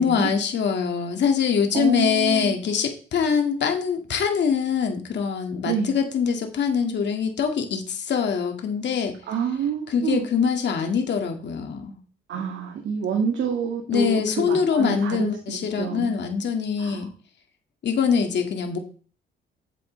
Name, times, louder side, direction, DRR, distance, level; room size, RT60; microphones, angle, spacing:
voice 1, 0.0-9.2 9.9-12.0 13.9-17.1 17.8-18.8, left 6 dB, 60° left, 4 dB, 2.3 m, -24 dB
voice 2, 1.7-2.5 5.6-5.9 9.3-10.2 12.3-16.1 16.8-17.0, right 7 dB, 75° right, 2 dB, 2.0 m, -27 dB
9.9 x 8.0 x 3.4 m, 0.40 s
cardioid pair, 90°, 20 cm